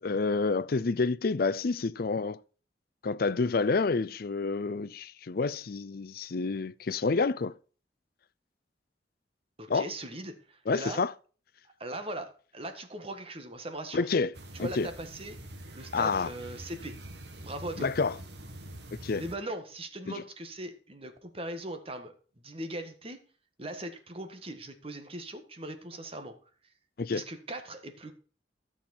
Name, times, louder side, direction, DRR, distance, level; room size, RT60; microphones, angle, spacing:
voice 1, 0.0-2.4 3.0-7.5 9.7-9.9 10.7-11.1 13.9-14.3 14.6-14.9 15.9-16.3 17.8-18.1 19.0-19.2 20.1-20.2 27.0-27.2, left 4 dB, 55° left, 0.5 m, -28 dB
voice 2, 9.6-11.0 11.8-14.1 14.5-15.4 15.7-17.0 17.4-17.9 19.2-22.1 22.4-23.2 23.6-26.4 27.1-28.1, right 1 dB, 35° right, 1.7 m, -39 dB
sound 1, 14.3-19.4, right 1 dB, 65° right, 1.7 m, -45 dB
12.5 x 7.2 x 4.3 m
head